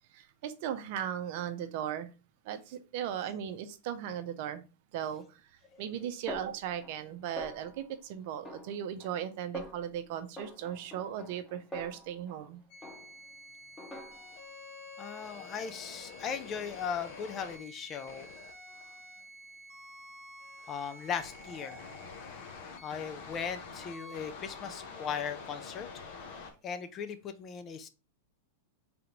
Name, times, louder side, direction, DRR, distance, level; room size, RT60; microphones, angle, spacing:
voice 1, 0.1-2.1 2.4-4.6 4.9-5.4 5.8-12.6, right 10 dB, 55° right, 10 dB, 0.6 m, -37 dB
Snare drum, 6.3-7.1 7.4-7.9 8.4-9.2 9.5-9.9 10.4-12.5 12.8-13.3 13.8-14.5, left 1 dB, 15° left, 1.1 m, -46 dB
sound 1, 12.7-26.5, left 3 dB, 60° left, 0.8 m, -47 dB
voice 2, 15.0-18.3 20.7-21.8 22.8-25.9 26.6-27.9, left 7 dB, 35° left, 9 dB, 0.5 m, -38 dB
3.8 x 3.4 x 2.9 m, 0.31 s
hypercardioid pair, 105°, 0 cm